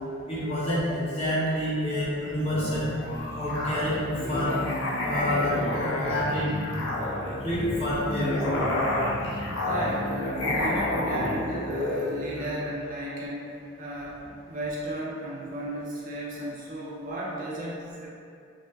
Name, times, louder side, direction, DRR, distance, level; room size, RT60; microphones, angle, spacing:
voice 1, 0.3-2.9 3.4-4.0 4.3-4.5 5.0-6.5 7.4-8.7, equal, 30° left, -9 dB, 0.7 m, -28 dB
Musical instrument, 2.4-12.6, left 1 dB, 70° left, 0.5 m, -30 dB
voice 2, 9.6-10.1 10.4-13.5 13.8-18.1, right 1 dB, 40° right, -5 dB, 0.4 m, -34 dB
2.2 x 2.1 x 3.2 m, 2.3 s
head